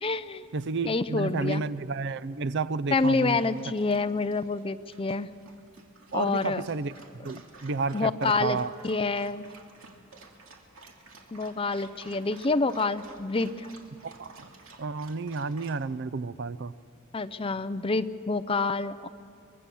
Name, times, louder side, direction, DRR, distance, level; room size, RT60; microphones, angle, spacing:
voice 1, 0.0-0.5 0.9-1.7 2.9-5.3 6.1-6.6 7.9-8.6 8.8-9.5 11.3-13.7 17.1-19.1, left 3 dB, 25° left, 12 dB, 0.6 m, -27 dB
voice 2, 0.5-3.6 6.1-8.7 14.0-14.5 14.8-16.7, right 4 dB, 55° right, 17 dB, 0.5 m, -31 dB
Dog, 2.9-15.8, right 3 dB, 80° right, 2.5 m, -53 dB
24.5 x 22.0 x 7.1 m, 2.4 s
head